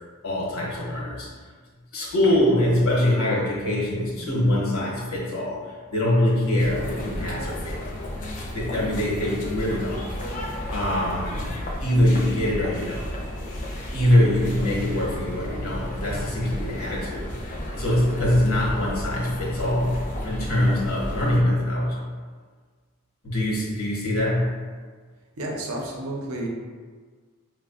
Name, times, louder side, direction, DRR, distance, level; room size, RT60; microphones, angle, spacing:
voice 1, 0.2-1.3 1.9-5.6 5.9-7.9 8.5-10.0 10.7-11.5 11.8-13.1 13.9-17.3 17.7-22.0 23.2-24.5, left 1 dB, 70° left, -4 dB, 0.9 m, -23 dB
sound 1, 6.6-21.4, left 1 dB, 35° left, 0.4 m, -33 dB
voice 2, 25.4-26.5, right 1 dB, 90° right, 0 dB, 0.6 m, -31 dB
4.8 x 2.2 x 2.4 m, 1.6 s
head